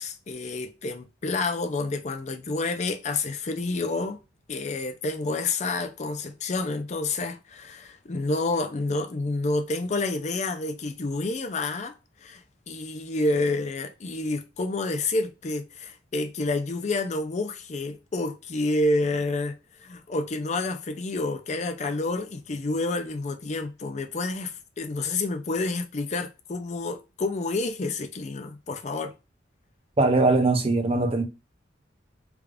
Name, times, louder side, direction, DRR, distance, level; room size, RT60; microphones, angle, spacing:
voice 1, 0.0-4.2 4.5-19.5 19.8-29.1, left 2 dB, 40° left, 0.5 m, -29 dB
voice 2, 30.0-31.2, right 2 dB, 30° right, 0.6 m, -21 dB
3.4 x 2.4 x 3.4 m
head